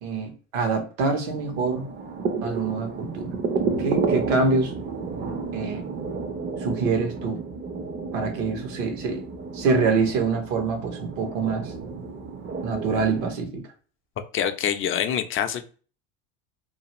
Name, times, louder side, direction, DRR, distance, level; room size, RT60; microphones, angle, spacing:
voice 1, 0.0-1.9 2.4-3.3 3.8-4.7 5.5-5.9 6.6-7.4 8.1-9.3 9.5-11.7 12.6-13.6, right 4 dB, 70° right, 5 dB, 1.0 m, -25 dB
sound 1, 1.2-13.3, right 4 dB, 30° right, 0.6 m, -31 dB
voice 2, 14.3-15.6, left 9 dB, 35° left, 8 dB, 0.4 m, -25 dB
2.5 x 2.5 x 3.0 m, 0.38 s
supercardioid pair, 95°, 36 cm